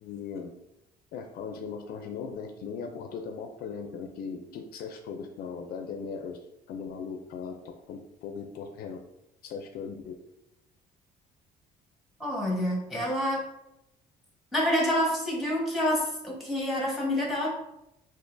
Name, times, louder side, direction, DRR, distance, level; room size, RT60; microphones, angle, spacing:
voice 1, 0.0-0.5 1.1-6.4 6.7-7.5 7.9-9.0 9.4-10.1, left 6 dB, 65° left, 5 dB, 0.4 m, -38 dB
voice 2, 12.2-13.4 14.5-17.5, left 1 dB, ahead, -2 dB, 1.1 m, -27 dB
3.6 x 2.5 x 2.6 m, 0.88 s
cardioid pair, 110°, 17 cm